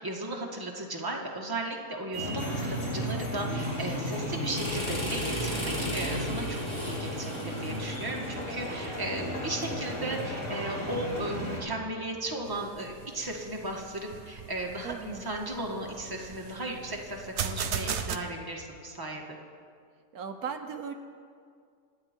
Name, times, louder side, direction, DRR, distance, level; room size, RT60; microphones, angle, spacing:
voice 1, 0.0-19.2, right 1 dB, 15° right, -1 dB, 1.6 m, -36 dB
sound 1, 2.1-11.6, equal, 50° left, 3.7 m, -34 dB
sound 2, 4.5-9.4, equal, 15° left, 2.8 m, -36 dB
sound 3, 12.5-18.2, right 7 dB, 55° right, 0.9 m, -38 dB
voice 2, 14.8-15.2 20.1-20.9, right 6 dB, 80° right, 6 dB, 1.4 m, -37 dB
27.0 x 9.4 x 4.5 m, 2.2 s
omnidirectional pair, 1.6 m